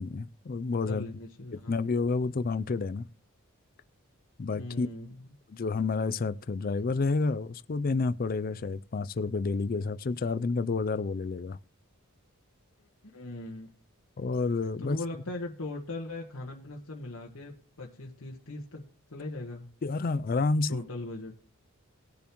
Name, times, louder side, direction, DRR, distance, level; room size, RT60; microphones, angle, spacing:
voice 1, 0.0-1.1 1.7-3.1 4.4-4.9 5.5-11.6 14.2-15.0 19.8-20.8, left 4 dB, 40° left, 0.4 m, -29 dB
voice 2, 0.8-1.8 4.6-5.3 13.0-13.7 14.8-18.8 19.1-19.7 20.7-21.3, left 2 dB, 70° left, 1.4 m, -39 dB
19.5 x 6.9 x 3.1 m
head